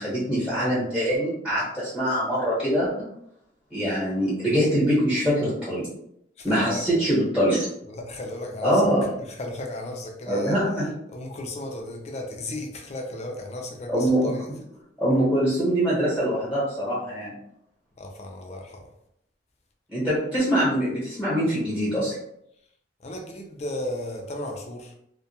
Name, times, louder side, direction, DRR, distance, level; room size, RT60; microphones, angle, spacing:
voice 1, 0.0-2.9 3.7-5.9 6.4-7.7 8.6-9.1 10.3-10.9 13.9-14.3 15.0-17.3 19.9-22.1, equal, ahead, -9 dB, 1.1 m, -23 dB
voice 2, 6.4-6.9 7.9-8.9 9.2-10.6 11.1-14.5 18.0-18.9 23.0-25.0, left 1 dB, 35° left, 1 dB, 0.4 m, -35 dB
2.3 x 2.1 x 2.8 m, 0.75 s
head